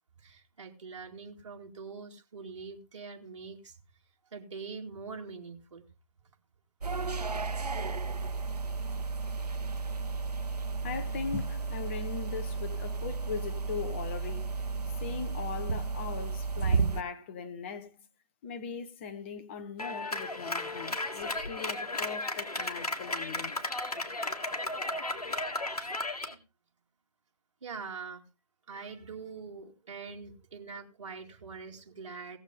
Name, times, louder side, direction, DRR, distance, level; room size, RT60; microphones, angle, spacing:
voice 1, 0.2-3.8 4.3-5.8 27.6-28.2 28.7-32.4, right 5 dB, 50° right, 2.4 m, -43 dB
sound 1, 6.8-17.0, right 4 dB, 80° right, 1.1 m, -33 dB
voice 2, 10.8-14.5 15.0-18.1 18.4-23.5, left 6 dB, 20° left, 0.9 m, -39 dB
Clapping, 19.8-26.3, left 2 dB, 70° left, 2.1 m, -34 dB
18.0 x 7.2 x 3.7 m
figure-of-eight pair, 150°, 20 cm